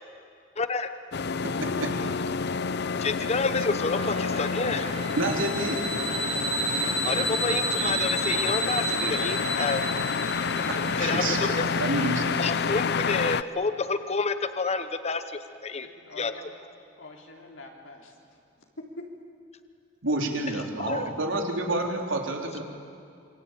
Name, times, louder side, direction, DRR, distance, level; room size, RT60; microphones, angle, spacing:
voice 1, 0.6-0.9 3.0-4.9 7.0-9.8 11.0-11.7 12.4-15.9 16.2-16.3 20.8-21.0, left 4 dB, 35° left, 10 dB, 1.0 m, -29 dB
sound 1, 1.1-13.4, left 5 dB, 60° left, 0.7 m, -29 dB
voice 2, 1.6-2.0 5.2-5.8 10.7-12.4 20.0-22.6, right 2 dB, 80° right, 2 dB, 3.6 m, -29 dB
sound 2, 3.9-12.5, right 4 dB, 30° right, 1.1 m, -41 dB
sound 3, 5.0-11.0, right 2 dB, 55° right, 4.0 m, -31 dB
voice 3, 15.8-16.4 17.0-18.2 18.8-19.1, left 2 dB, 75° left, 0 dB, 3.8 m, -44 dB
27.0 x 24.0 x 8.9 m, 2.5 s
head